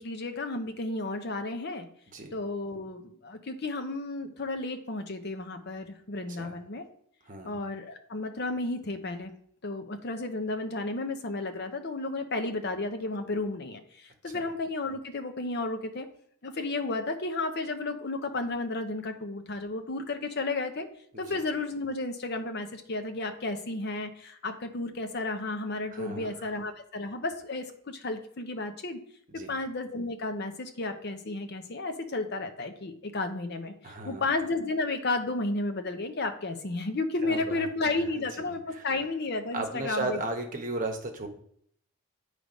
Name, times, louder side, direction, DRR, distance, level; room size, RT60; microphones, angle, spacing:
voice 1, 0.0-1.9 2.3-6.8 7.4-9.3 9.6-16.1 16.4-20.9 21.2-29.0 29.3-40.2, left 2 dB, 45° left, 7 dB, 0.7 m, -33 dB
voice 2, 7.3-7.6 14.3-14.5 21.1-21.4 25.9-26.3 29.3-29.5 33.8-34.2 37.2-38.3 38.7-38.8 39.5-41.3, right 2 dB, 35° right, 3 dB, 1.0 m, -35 dB
7.9 x 3.3 x 5.1 m, 0.64 s
head